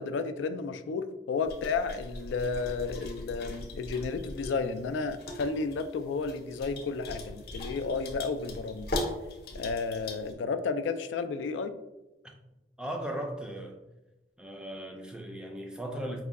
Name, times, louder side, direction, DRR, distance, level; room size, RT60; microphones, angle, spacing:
voice 1, 0.0-8.9 9.5-11.7, left 4 dB, 75° left, 0.3 m, -32 dB
sound 1, 1.5-10.3, left 1 dB, 55° left, 0.7 m, -40 dB
voice 2, 12.8-13.8 14.4-16.2, right 1 dB, 5° right, 0.4 m, -37 dB
4.8 x 2.2 x 3.5 m
head